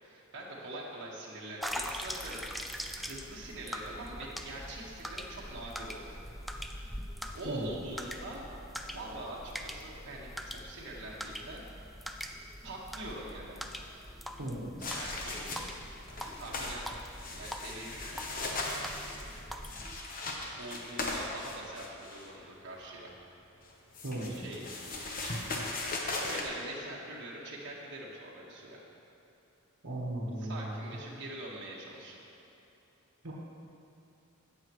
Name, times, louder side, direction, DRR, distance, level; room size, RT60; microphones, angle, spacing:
voice 1, 0.0-6.1 7.3-8.4 8.9-10.3 10.6-12.0 12.6-13.8 14.8-15.7 16.1-16.9 17.3-18.7 19.1-19.4 19.7-19.9 20.6-23.2 24.3-25.4 25.8-28.8 30.4-32.2, right 1 dB, 60° right, -4 dB, 1.7 m, -44 dB
sound 1, 1.6-20.0, equal, ahead, 0.4 m, -43 dB
voice 2, 14.4-14.9 24.0-24.6 29.8-31.0 33.2-33.3, right 1 dB, 75° right, -5 dB, 1.5 m, -37 dB
sound 2, 14.8-15.8 16.1-16.8 17.1-22.3 23.6-26.4, left 2 dB, 40° left, 1.1 m, -38 dB
Guitar, 18.1-19.3, right 2 dB, 80° left, 2.4 m, -56 dB
16.5 x 6.5 x 3.2 m, 2.9 s
head